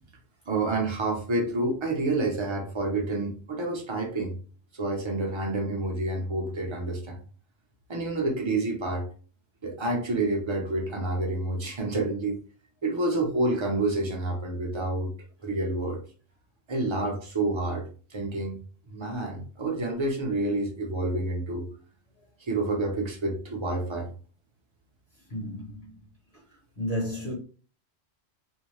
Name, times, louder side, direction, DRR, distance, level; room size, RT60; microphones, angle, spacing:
voice 1, 0.5-4.4 4.8-7.2 7.9-9.1 9.6-12.4 12.8-15.1 15.4-16.0 16.7-18.6 18.9-21.7 22.5-24.1, right 2 dB, 30° right, 0.7 m, -28 dB
voice 2, 25.3-25.9 26.8-27.3, equal, 50° left, 1.1 m, -32 dB
2.6 x 2.2 x 3.0 m
omnidirectional pair, 1.1 m